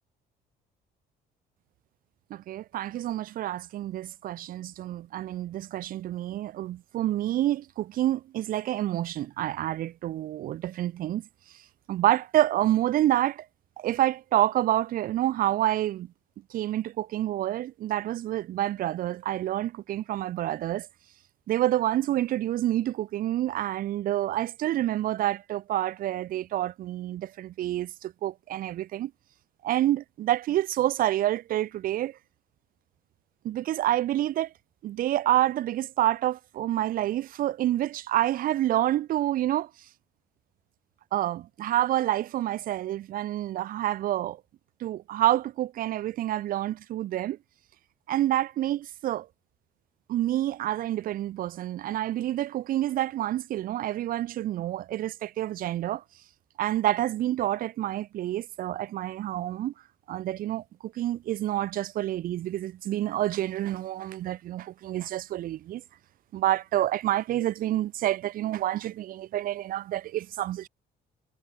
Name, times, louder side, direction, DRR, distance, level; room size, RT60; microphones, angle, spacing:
voice 1, 2.3-11.2 11.9-13.5 13.8-16.1 16.5-20.9 21.5-29.1 29.6-32.2 33.4-34.5 34.8-39.7 41.1-44.4 44.8-47.4 48.1-49.3 50.1-56.0 56.6-59.7 60.1-65.8 66.3-70.7, right 13 dB, 55° right, 0.6 m, -28 dB
cardioid pair, 110°, 17 cm